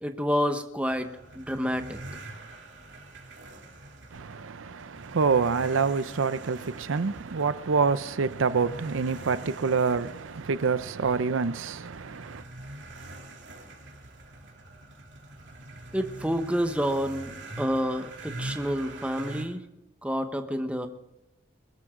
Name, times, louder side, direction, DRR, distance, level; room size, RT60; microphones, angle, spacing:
voice 1, 0.0-2.2 15.9-19.6 20.0-20.9, equal, 5° right, 1.0 m, -29 dB
sound 1, 0.9-19.4, right 1 dB, 65° right, 3.0 m, -44 dB
voice 2, 4.1-12.4, right 5 dB, 85° right, 0.6 m, -27 dB
22.0 x 13.5 x 3.8 m
head